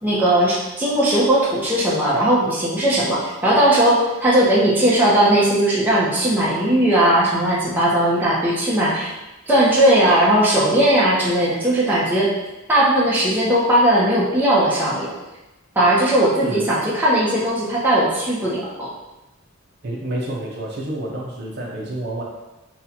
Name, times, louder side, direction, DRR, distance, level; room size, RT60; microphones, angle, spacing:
voice 1, 0.0-9.1 9.5-12.3 12.7-15.1 15.8-18.9, right 1 dB, 10° right, -8 dB, 0.8 m, -18 dB
voice 2, 19.8-22.2, right 1 dB, 50° right, -3 dB, 0.6 m, -28 dB
5.4 x 2.3 x 2.8 m, 1.0 s
head